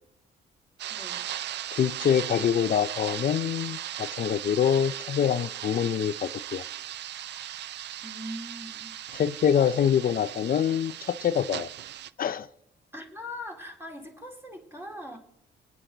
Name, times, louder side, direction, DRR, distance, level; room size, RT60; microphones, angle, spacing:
sound 1, 0.8-12.1, right 12 dB, 60° right, 0.4 m, -37 dB
voice 1, 0.9-1.3 8.0-8.9 12.9-15.2, left 1 dB, 10° right, 3.2 m, -41 dB
voice 2, 1.7-6.6 9.1-11.7 12.2-12.5, left 8 dB, 45° left, 0.5 m, -25 dB
25.5 x 9.6 x 3.9 m
cardioid pair, 90°, 20 cm